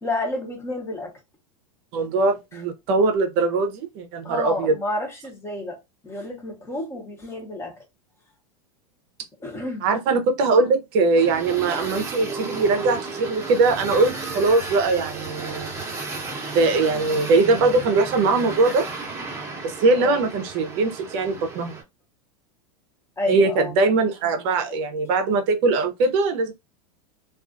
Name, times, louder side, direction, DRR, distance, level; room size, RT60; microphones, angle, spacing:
voice 1, 0.0-1.1 2.5-2.6 4.2-5.8 6.0-7.8 9.4-9.9 20.0-20.2 23.2-23.7, left 2 dB, 15° left, 0.8 m, -30 dB
voice 2, 1.9-4.7 9.8-15.7 16.5-18.9 19.8-21.7 23.3-26.5, right 3 dB, 50° right, 0.6 m, -21 dB
sound 1, 11.1-21.8, right 3 dB, 15° right, 0.8 m, -33 dB
2.3 x 2.3 x 2.4 m
supercardioid pair, 125°, 18 cm